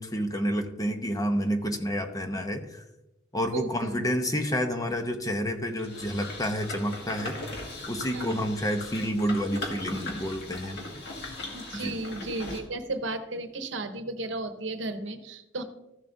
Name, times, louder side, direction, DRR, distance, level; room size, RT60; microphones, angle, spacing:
voice 1, 0.0-2.8 3.3-7.4 7.9-10.8 11.7-11.9, equal, 20° left, 5 dB, 0.8 m, -29 dB
voice 2, 3.5-4.1 8.1-8.5 11.5-15.6, right 2 dB, 70° right, 8 dB, 0.9 m, -34 dB
sound 1, 5.8-12.6, left 2 dB, 60° left, 2.0 m, -39 dB
14.0 x 7.1 x 2.7 m, 0.94 s
head